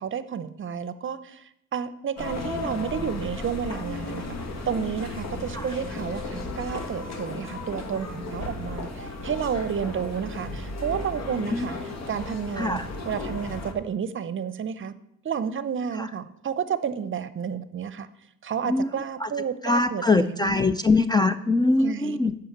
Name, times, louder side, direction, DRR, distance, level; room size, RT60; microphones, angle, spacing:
voice 1, 0.0-4.4 4.7-12.8 13.1-14.9 15.2-18.1 18.4-20.6 21.8-22.2, right 7 dB, 40° right, 14 dB, 0.7 m, -31 dB
sound 1, 2.2-13.7, left 3 dB, 60° left, 1.5 m, -35 dB
voice 2, 12.6-12.9 16.0-16.1 18.6-18.9 19.2-19.3 19.6-22.3, left 3 dB, 15° left, 11 dB, 0.4 m, -22 dB
8.6 x 5.0 x 7.3 m, 0.77 s
cardioid pair, 90°, 30 cm